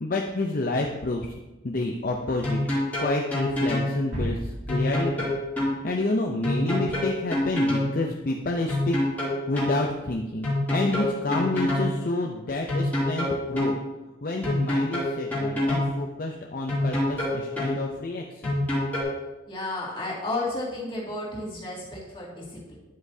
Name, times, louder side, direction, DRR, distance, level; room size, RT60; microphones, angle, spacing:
voice 1, 0.0-1.3 1.6-2.6 3.0-5.3 5.8-9.0 9.5-13.7 14.2-18.6, left 2 dB, 45° left, 1 dB, 0.6 m, -29 dB
sound 1, 2.4-3.9 4.7-5.7 6.4-7.9 8.7-9.8 10.4-11.9 12.7-13.7 14.4-15.9 16.7-17.8 18.4-19.0, left 1 dB, 10° left, 2.7 m, -25 dB
sound 2, 4.1-6.6, equal, 70° right, 2.9 m, -36 dB
voice 2, 19.5-22.7, left 2 dB, 25° left, -5 dB, 2.2 m, -32 dB
9.6 x 8.0 x 2.7 m, 1.1 s
head